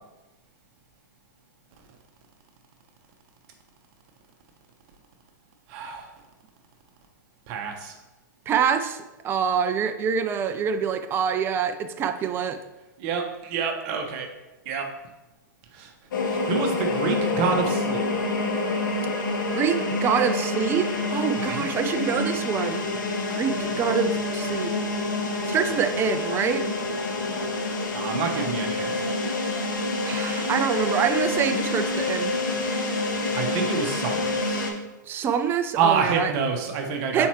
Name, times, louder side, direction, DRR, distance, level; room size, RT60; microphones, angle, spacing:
voice 1, 5.7-6.1 7.5-8.0 13.0-14.3 14.6-14.9 15.7-15.9 16.2-18.0 21.3-21.7 27.9-28.9 33.4-34.7 35.8-37.3, right 5 dB, 45° right, 4 dB, 1.0 m, -27 dB
voice 2, 8.5-12.6 19.5-22.8 23.3-24.7 25.5-26.7 30.0-32.4 35.1-36.3 37.1-37.3, right 7 dB, 20° right, 9 dB, 0.4 m, -25 dB
sound 1, 16.1-34.7, left 2 dB, 75° left, 1.2 m, -27 dB
6.9 x 4.6 x 3.1 m, 1.0 s
hypercardioid pair, 125°, 11 cm